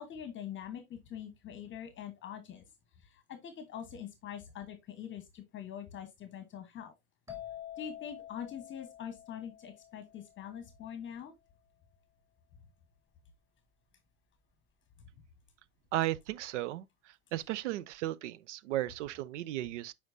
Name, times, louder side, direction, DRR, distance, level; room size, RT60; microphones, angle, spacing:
voice 1, 0.0-2.6 3.0-6.9 7.8-11.3 15.0-15.1, left 9 dB, 25° left, 1.2 m, -44 dB
sound 1, 7.3-10.9, left 11 dB, 5° right, 2.2 m, -48 dB
voice 2, 15.9-16.8 17.3-19.9, right 14 dB, 55° right, 0.5 m, -35 dB
7.8 x 5.1 x 2.7 m
hypercardioid pair, 95°, 43 cm